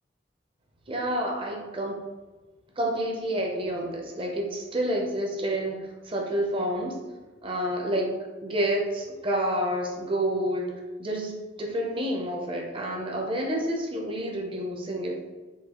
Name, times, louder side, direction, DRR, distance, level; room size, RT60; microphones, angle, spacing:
voice 1, 0.9-2.0 2.8-7.0 7.4-8.1 8.4-10.7 11.0-15.2, right 1 dB, 30° right, 0 dB, 0.6 m, -29 dB
3.9 x 2.7 x 2.9 m, 1.2 s
head